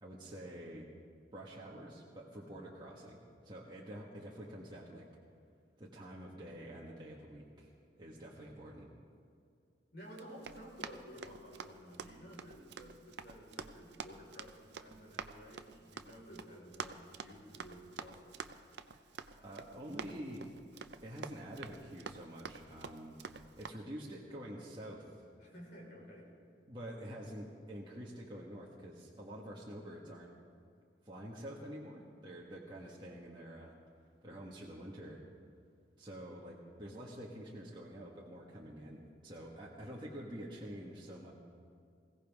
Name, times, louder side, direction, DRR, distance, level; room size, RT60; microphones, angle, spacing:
voice 1, 0.0-0.8 1.3-5.1 5.8-8.9 19.4-20.5 21.0-23.2 23.6-25.2 26.7-30.3 31.0-33.8 34.2-35.2 36.0-41.3, equal, 25° right, -5 dB, 1.5 m, -47 dB
voice 2, 9.9-18.4 25.4-26.3, equal, 55° left, -3 dB, 4.6 m, -53 dB
Run, 10.1-23.7, right 5 dB, 65° right, 0.6 m, -49 dB
20.5 x 16.5 x 3.6 m, 2.3 s
head